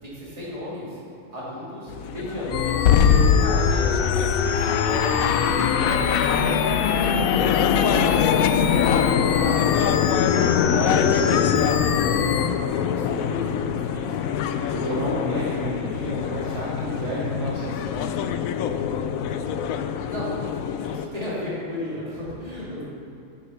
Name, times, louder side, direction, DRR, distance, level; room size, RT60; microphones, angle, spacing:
voice 1, 0.0-1.0 1.3-4.0 4.3-6.8 7.3-8.3 8.6-9.6 12.8-14.2 20.1-22.8, left 1 dB, 25° right, -8 dB, 3.1 m, -34 dB
sound 1, 1.9-21.1, left 8 dB, 90° left, 1.0 m, -24 dB
sound 2, 2.5-12.5, left 7 dB, 65° left, 0.5 m, -24 dB
voice 2, 10.7-12.1 14.1-14.2 14.7-18.3, right 1 dB, 60° right, -6 dB, 1.5 m, -31 dB
9.2 x 8.1 x 5.8 m, 2.5 s
omnidirectional pair, 1.4 m